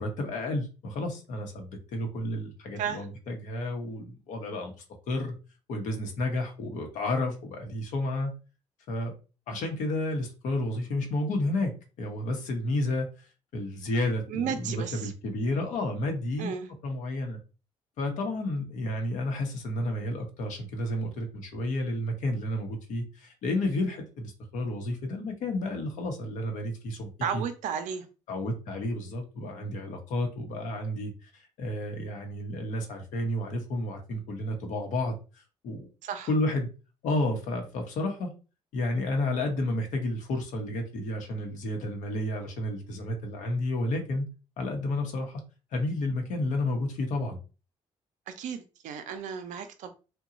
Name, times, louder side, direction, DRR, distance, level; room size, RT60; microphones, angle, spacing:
voice 1, 0.0-4.7 5.1-5.3 5.7-8.3 8.9-9.1 9.5-16.5 16.8-17.4 18.0-27.4 28.3-35.9 36.3-36.7 37.0-38.3 38.7-44.3 44.6-45.4 45.7-47.4, left 1 dB, 75° left, 0.8 m, -31 dB
voice 2, 2.8-3.1 14.3-15.1 16.4-16.7 27.2-28.1 36.0-36.3 48.3-49.9, right 7 dB, 75° right, 0.5 m, -33 dB
2.9 x 2.2 x 2.5 m
supercardioid pair, 65°, 13 cm